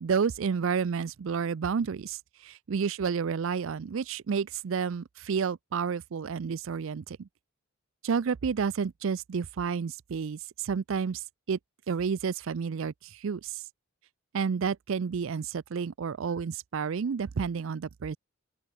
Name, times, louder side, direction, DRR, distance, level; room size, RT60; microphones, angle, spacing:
voice 1, 0.0-2.2 2.4-7.3 8.0-11.2 11.5-11.6 11.9-13.6 14.3-18.2, right 6 dB, 60° right, 0.4 m, -30 dB
open air
head